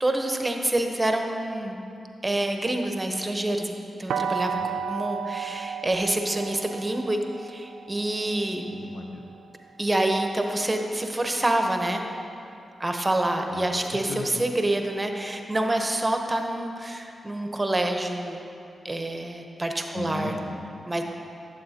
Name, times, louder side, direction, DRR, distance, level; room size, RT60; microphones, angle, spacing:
voice 1, 0.0-1.8 2.2-3.7 4.0-4.6 4.9-8.6 9.8-12.0 12.8-18.4 18.8-20.4 20.8-21.0, right 1 dB, 25° right, 4 dB, 0.9 m, -27 dB
sound 1, 4.1-9.9, right 7 dB, 85° right, 0.3 m, -34 dB
voice 2, 8.7-9.2 13.5-13.8 14.1-14.5 19.9-20.8, left 2 dB, 85° left, 3 dB, 0.6 m, -36 dB
11.5 x 7.7 x 2.9 m, 2.8 s
supercardioid pair, 45°, 0 cm